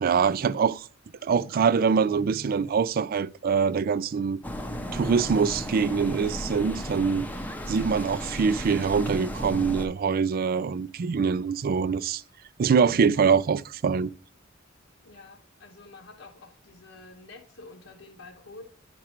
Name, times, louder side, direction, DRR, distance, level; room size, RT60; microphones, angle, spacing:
voice 1, 0.0-0.9 1.2-4.4 4.9-7.3 7.7-12.2 12.6-14.1, right 6 dB, 45° right, 0.4 m, -24 dB
sound 1, 4.4-9.9, equal, 10° left, 0.7 m, -34 dB
voice 2, 15.0-18.6, left 3 dB, 80° left, 1.1 m, -48 dB
9.8 x 6.1 x 3.0 m
head